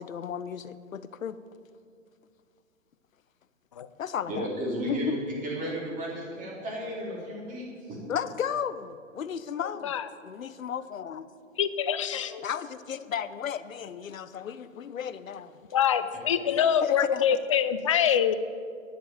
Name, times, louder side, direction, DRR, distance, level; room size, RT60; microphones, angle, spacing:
voice 1, 0.0-1.4 4.0-4.5 4.9-5.2 8.1-9.9 10.2-11.3 12.4-15.5 16.5-17.3, left 8 dB, 80° left, 14 dB, 0.8 m, -34 dB
voice 2, 4.3-5.2 5.4-8.0, right 1 dB, 20° right, -4 dB, 3.7 m, -33 dB
voice 3, 11.6-12.5 15.7-18.3, left 8 dB, 25° left, 12 dB, 0.3 m, -25 dB
10.5 x 7.6 x 9.3 m, 2.2 s
hypercardioid pair, 130°, 40 cm